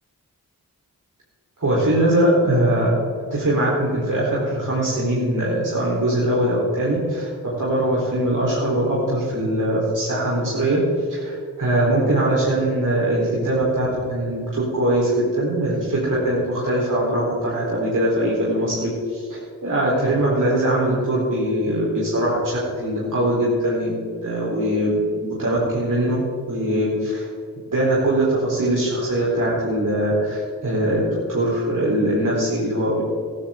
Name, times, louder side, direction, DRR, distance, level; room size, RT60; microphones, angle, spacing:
voice 1, 1.6-2.9 3.3-10.8 11.1-26.2 26.5-27.3 27.6-33.0, right 1 dB, 60° right, -7 dB, 4.3 m, -21 dB
15.0 x 14.0 x 3.9 m, 2.2 s
cardioid pair, 45°, 35 cm